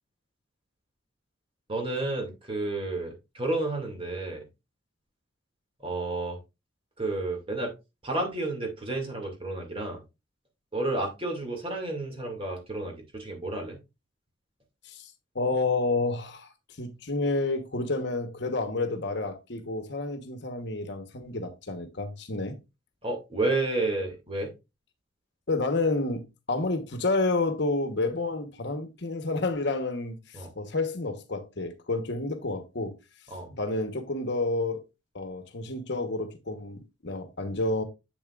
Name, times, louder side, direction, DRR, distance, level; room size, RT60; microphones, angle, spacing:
voice 1, 1.7-4.4 5.8-6.4 7.0-7.7 8.0-10.0 10.7-13.8 23.0-24.5 30.3-30.5 33.3-33.5, right 2 dB, 30° right, 2.2 m, -31 dB
voice 2, 14.8-16.5 16.8-22.6 25.5-32.9 33.5-34.8 35.1-37.8, left 2 dB, 60° left, 1.1 m, -30 dB
7.9 x 7.2 x 2.4 m
head